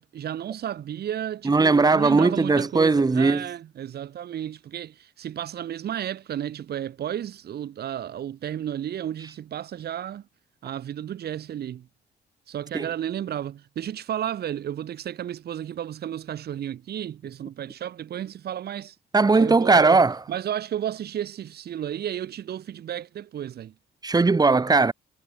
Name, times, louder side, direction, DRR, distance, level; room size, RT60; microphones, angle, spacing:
voice 1, 0.0-10.2 10.6-11.9 12.5-19.0 19.3-20.0 20.3-23.7, right 10 dB, 65° right, 1.7 m, -33 dB
voice 2, 1.4-3.5 12.7-12.9 19.1-20.2 24.0-24.9, right 3 dB, 20° right, 1.5 m, -19 dB
cardioid pair, 95°, 18 cm